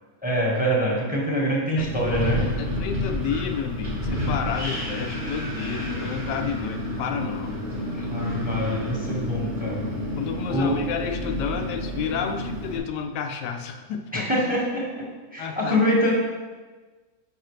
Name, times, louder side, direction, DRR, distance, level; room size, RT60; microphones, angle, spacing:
voice 1, 0.2-2.4 5.7-5.8 7.9-9.8 10.5-10.8 14.1-15.1 15.3-16.1, equal, 5° right, -3 dB, 1.2 m, -25 dB
voice 2, 1.8-2.1 2.6-7.6 10.1-14.3 15.4-15.8, left 7 dB, 80° left, 6 dB, 1.2 m, -31 dB
Wind, 1.8-12.8, left 1 dB, 30° right, 2.0 m, -30 dB
8.8 x 5.4 x 3.2 m, 1.3 s
omnidirectional pair, 1.9 m